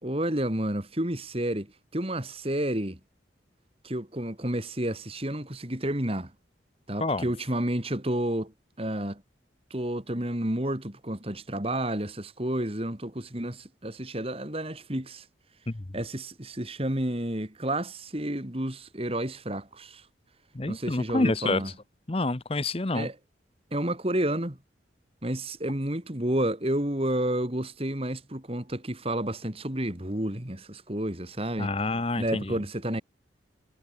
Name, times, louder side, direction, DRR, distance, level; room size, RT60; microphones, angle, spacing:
voice 1, 0.0-3.0 3.8-6.3 6.9-8.5 8.8-9.2 9.7-15.3 15.9-20.1 20.7-21.7 22.9-23.2 23.7-24.6 25.2-31.7 32.2-33.0, right 1 dB, 30° right, 2.4 m, -30 dB
voice 2, 20.6-21.6 22.1-23.1 31.6-32.4, left 2 dB, 30° left, 0.8 m, -27 dB
head